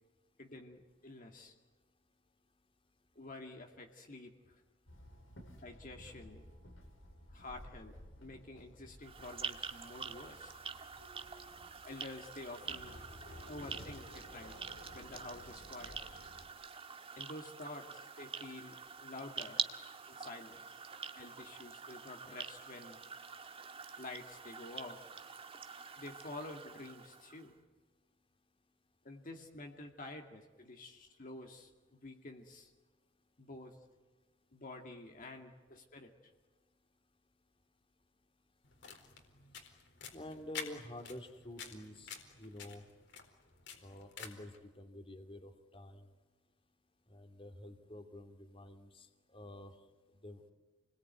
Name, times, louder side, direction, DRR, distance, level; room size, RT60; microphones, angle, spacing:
voice 1, 0.4-1.5 3.2-4.6 5.6-6.5 7.3-10.5 11.8-13.0 13.5-14.6 14.9-16.2 17.2-17.9 18.2-19.6 20.1-20.7 21.2-23.0 24.0-25.1 26.0-27.6 29.0-32.7 33.4-33.8 34.5-36.3, left 2 dB, 45° left, 2 dB, 2.3 m, -49 dB
Walk footsteps / Chatter / Hiss, 4.9-16.5, equal, 80° left, 5.1 m, -55 dB
sound 1, 9.0-27.5, right 6 dB, 30° right, 1.7 m, -46 dB
sound 2, 38.6-44.6, left 6 dB, 65° left, 4.3 m, -49 dB
voice 2, 40.1-42.1 42.4-42.8 43.8-46.1 47.1-49.1 49.3-49.7 50.2-50.5, left 1 dB, 30° left, 6 dB, 2.7 m, -49 dB
29.5 x 21.5 x 9.5 m, 1.3 s
head